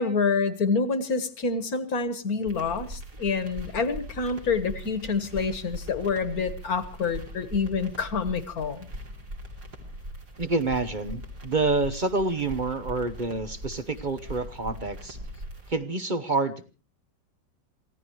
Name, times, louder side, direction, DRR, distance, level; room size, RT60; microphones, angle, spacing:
voice 1, 0.0-8.9, left 4 dB, 55° left, 12 dB, 1.8 m, -27 dB
sound 1, 2.5-15.7, equal, 65° right, 3.6 m, -41 dB
voice 2, 10.4-15.2 15.7-16.6, right 3 dB, 35° right, 11 dB, 0.8 m, -28 dB
27.5 x 16.0 x 3.1 m, 0.34 s
omnidirectional pair, 1.9 m